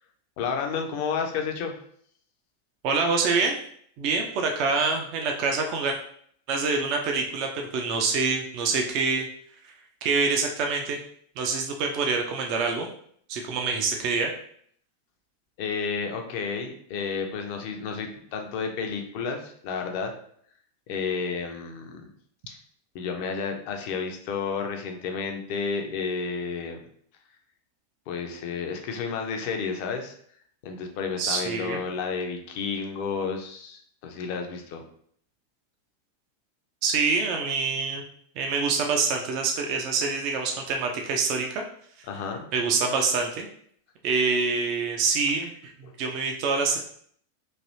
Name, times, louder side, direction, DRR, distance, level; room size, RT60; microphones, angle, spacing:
voice 1, 0.4-1.7 15.6-20.1 20.9-22.0 22.5-22.6 22.9-26.8 28.1-30.1 30.6-34.8 42.1-42.5 45.8-45.9, left 5 dB, 45° left, 4 dB, 0.5 m, -31 dB
voice 2, 2.8-3.6 4.0-6.0 6.5-9.3 10.0-11.0 11.4-12.9 13.3-14.3 31.2-31.8 36.8-38.0 38.4-41.6 42.5-43.5 44.0-45.5 46.0-46.8, right 4 dB, 40° right, 2 dB, 0.4 m, -26 dB
3.1 x 2.6 x 2.7 m, 0.62 s
figure-of-eight pair, 90°, 0 cm